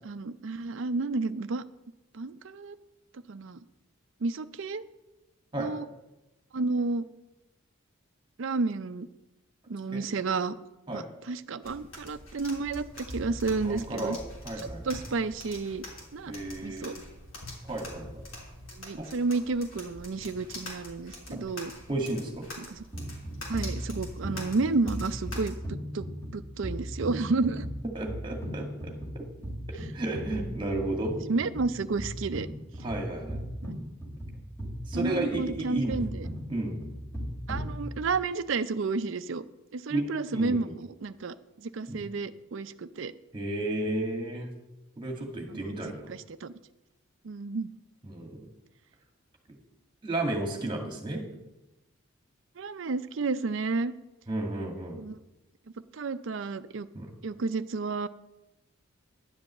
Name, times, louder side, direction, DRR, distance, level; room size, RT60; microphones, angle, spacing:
voice 1, 0.0-1.6 2.1-2.8 3.3-3.6 4.2-4.8 5.6-5.9 6.5-7.1 8.4-9.1 9.7-10.5 10.9-14.2 14.6-15.8 16.1-16.3 16.6-16.9 18.8-21.7 22.6-22.8 23.5-26.1 26.3-27.6 31.3-32.5 33.6-33.8 34.9-36.3 37.5-39.4 39.7-43.1 45.5-45.8 46.1-46.5 47.2-47.7 52.6-53.9 55.0-55.2 55.9-56.9 57.2-58.1, right 3 dB, 65° right, 12 dB, 0.5 m, -31 dB
sound 1, 11.6-25.5, left 1 dB, 70° left, 3.3 m, -44 dB
voice 2, 13.6-14.2 14.4-14.8 16.3-17.0 17.7-18.2 19.0-19.1 21.9-22.5 27.9-29.3 29.7-31.1 32.8-33.4 34.9-35.9 36.5-36.7 39.9-40.7 41.9-42.0 43.3-44.5 45.0-46.1 48.0-48.5 50.0-51.2 54.3-55.0 56.9-57.1, right 2 dB, 20° right, 2 dB, 2.0 m, -33 dB
sound 2, 22.9-38.3, equal, 10° left, 2.6 m, -38 dB
11.0 x 5.4 x 8.3 m, 0.98 s
head